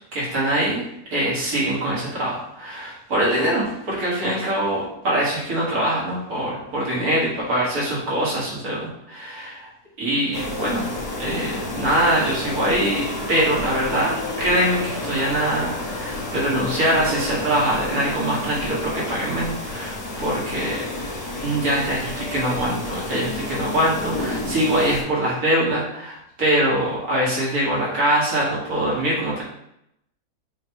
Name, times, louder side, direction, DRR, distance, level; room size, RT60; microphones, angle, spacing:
voice 1, 0.1-0.8 1.1-9.7 10.0-10.9 11.2-21.1 21.4-29.4, right 1 dB, 65° right, -6 dB, 2.1 m, -23 dB
sound 1, 10.3-25.0, left 2 dB, 70° left, 1.7 m, -30 dB
7.0 x 2.4 x 3.0 m, 0.78 s
omnidirectional pair, 1.7 m